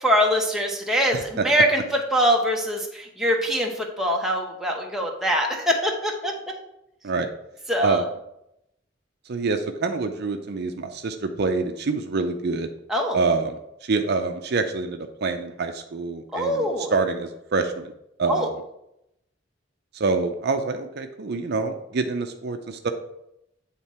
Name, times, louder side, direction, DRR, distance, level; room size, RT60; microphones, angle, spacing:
voice 1, 0.0-1.8 2.1-6.3 7.7-8.0 12.9-13.2 16.3-16.9 18.3-18.5, equal, ahead, -1 dB, 0.9 m, -23 dB
voice 2, 9.3-12.7 13.1-17.9 18.2-18.5 19.9-22.9, right 4 dB, 55° right, 6 dB, 0.5 m, -26 dB
8.9 x 3.6 x 4.3 m, 0.82 s
head